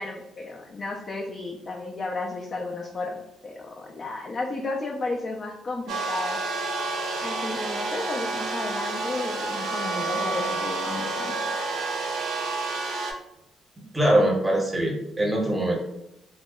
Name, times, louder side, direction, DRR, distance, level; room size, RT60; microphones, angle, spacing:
voice 1, 0.0-6.4 7.2-11.4, left 3 dB, 40° left, 0 dB, 0.3 m, -33 dB
sound 1, 5.9-13.1, right 3 dB, 80° right, 0.5 m, -29 dB
voice 2, 13.9-15.7, right 1 dB, 15° right, -1 dB, 0.7 m, -22 dB
2.6 x 2.1 x 2.2 m, 0.85 s
cardioid pair, 90°, 0 cm